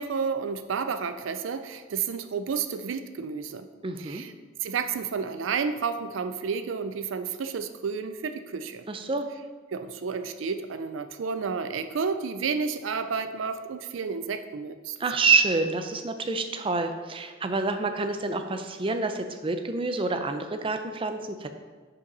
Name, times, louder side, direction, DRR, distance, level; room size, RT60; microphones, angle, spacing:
voice 1, 0.0-3.7 4.0-4.3 4.6-8.8 9.7-15.0, right 5 dB, 85° right, 9 dB, 0.4 m, -31 dB
voice 2, 3.8-4.2 8.9-9.3 15.0-21.5, right 4 dB, 30° right, 7 dB, 0.5 m, -27 dB
5.6 x 5.1 x 5.3 m, 1.4 s
head